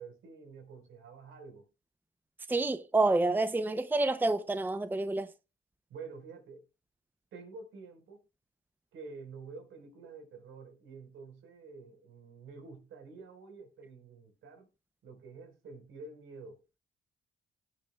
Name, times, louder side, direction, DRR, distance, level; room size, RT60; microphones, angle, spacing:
voice 1, 0.0-1.7 5.9-6.7 7.3-8.2 8.9-14.7 15.0-16.6, right 4 dB, 75° right, 4.6 m, -49 dB
voice 2, 2.5-5.3, right 2 dB, 10° right, 0.7 m, -28 dB
19.0 x 7.6 x 2.3 m
cardioid pair, 90°, 20 cm